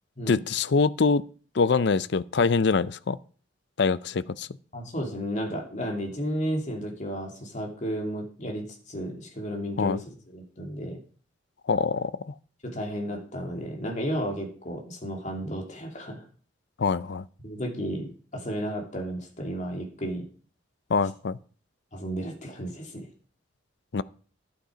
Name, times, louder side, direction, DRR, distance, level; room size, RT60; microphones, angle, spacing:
voice 1, 0.3-1.2 1.5-3.2 3.8-4.5 9.8-10.0 11.7-12.3 16.8-17.2 20.9-21.4 23.9-24.0, left 4 dB, 60° left, 0.5 m, -24 dB
voice 2, 4.7-11.0 12.6-16.2 17.4-20.3 21.9-23.1, equal, 40° left, 2.8 m, -33 dB
11.5 x 8.1 x 5.1 m
head